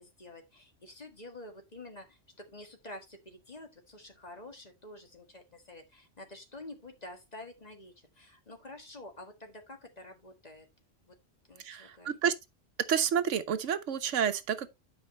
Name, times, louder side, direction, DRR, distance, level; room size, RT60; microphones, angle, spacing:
voice 1, 0.0-10.7 11.0-11.1 11.5-12.1, left 2 dB, 35° left, 1.7 m, -49 dB
voice 2, 11.6-12.3 12.9-14.7, right 8 dB, 80° right, 1.1 m, -29 dB
10.5 x 5.2 x 3.2 m
omnidirectional pair, 1.3 m